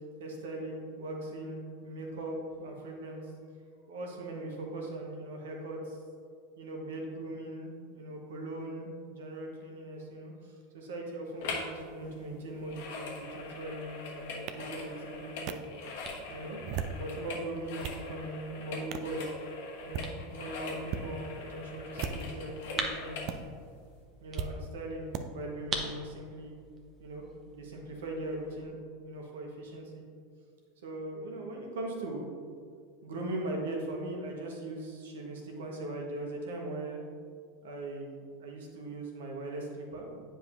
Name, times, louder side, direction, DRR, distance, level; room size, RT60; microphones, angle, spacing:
voice 1, 0.2-3.3 3.9-6.0 6.6-15.6 16.3-16.6 16.9-19.2 19.8-23.3 24.2-26.5 27.0-30.0 30.8-32.3 33.0-37.0 37.6-40.2, right 1 dB, 70° right, 0 dB, 1.2 m, -40 dB
sound 1, 11.4-11.8 12.0-23.3 23.8-23.9, left 3 dB, 65° left, 1.1 m, -42 dB
sound 2, 14.5-14.6 15.5-15.6 16.5-17.0 17.5-18.0 18.9-19.1 19.8-20.1 20.8-21.1 21.9-22.4 23.3-23.4 24.4-24.5 25.1-25.2, right 7 dB, 50° right, 0.4 m, -36 dB
sound 3, 15.2-28.7, right 3 dB, 35° right, 0.9 m, -45 dB
9.3 x 5.1 x 2.6 m, 2.2 s
figure-of-eight pair, 85°, 0 cm